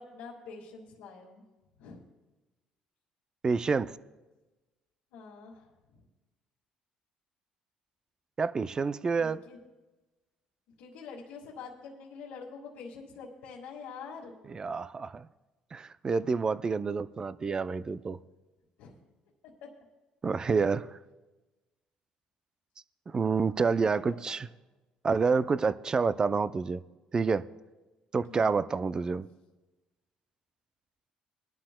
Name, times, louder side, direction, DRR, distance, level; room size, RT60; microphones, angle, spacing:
voice 1, 0.0-1.4 1.8-2.0 5.1-5.7 9.1-9.6 10.8-14.4 18.8-19.0 19.4-19.5 23.8-24.4 28.1-28.6, left 5 dB, 85° left, -4 dB, 1.8 m, -46 dB
voice 2, 3.4-3.9 8.4-9.4 14.5-15.3 15.7-18.2 20.2-21.0 23.1-24.5 25.0-26.8 27.1-27.4 28.1-29.3, right 5 dB, 30° right, 14 dB, 0.4 m, -28 dB
21.0 x 11.5 x 2.2 m, 1.2 s
cardioid pair, 90°, 3 cm